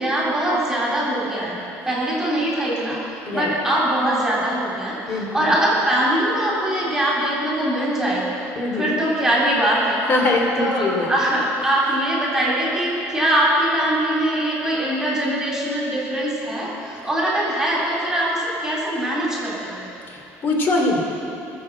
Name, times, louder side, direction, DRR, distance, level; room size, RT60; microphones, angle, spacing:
voice 1, 0.0-1.6 1.9-3.0 3.3-8.2 8.7-10.0 10.6-19.8, right 1 dB, 10° right, -6 dB, 3.5 m, -22 dB
voice 2, 5.1-5.5 8.6-9.0 10.1-11.1 20.1-21.0, left 2 dB, 35° left, 0 dB, 2.7 m, -22 dB
20.5 x 7.2 x 7.6 m, 2.8 s
cardioid pair, 150°, 6 cm